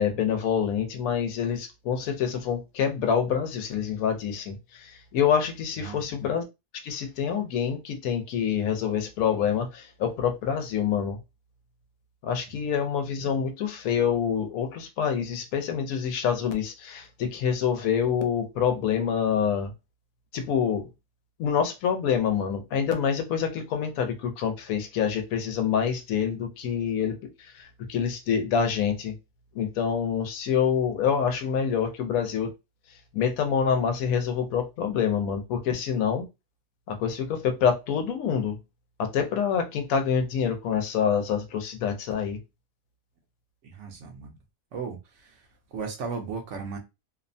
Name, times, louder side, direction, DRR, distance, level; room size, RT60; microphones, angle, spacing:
voice 1, 0.0-6.4 6.8-11.2 12.2-19.7 20.3-20.8 21.4-29.1 29.5-32.5 33.1-36.2 36.9-38.6 39.0-42.4, left 7 dB, 90° left, 1.1 m, -26 dB
voice 2, 5.8-6.2 43.6-44.4 44.7-45.5 45.7-46.8, right 5 dB, 65° right, 0.9 m, -36 dB
2.8 x 2.1 x 2.5 m
omnidirectional pair, 1.4 m